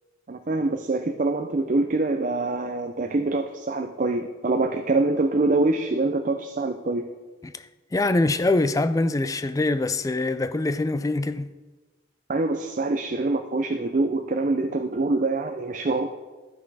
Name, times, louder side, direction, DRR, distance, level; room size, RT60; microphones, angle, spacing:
voice 1, 0.3-7.1 12.3-16.1, right 2 dB, 40° right, 0.5 m, -25 dB
voice 2, 7.9-11.5, left 2 dB, 15° left, 0.3 m, -24 dB
12.5 x 6.0 x 4.8 m
head